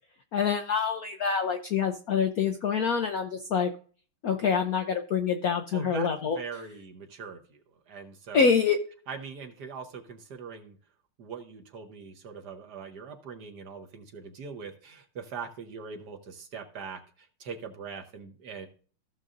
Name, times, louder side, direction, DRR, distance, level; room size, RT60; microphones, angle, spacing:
voice 1, 0.3-3.7 4.2-6.4 8.3-8.8, left 6 dB, 75° left, 4 dB, 0.8 m, -26 dB
voice 2, 5.7-7.6 7.9-8.5 9.1-10.8 11.2-17.0 17.4-18.7, right 5 dB, 55° right, 5 dB, 1.4 m, -41 dB
15.5 x 6.6 x 2.5 m, 0.42 s
omnidirectional pair, 2.3 m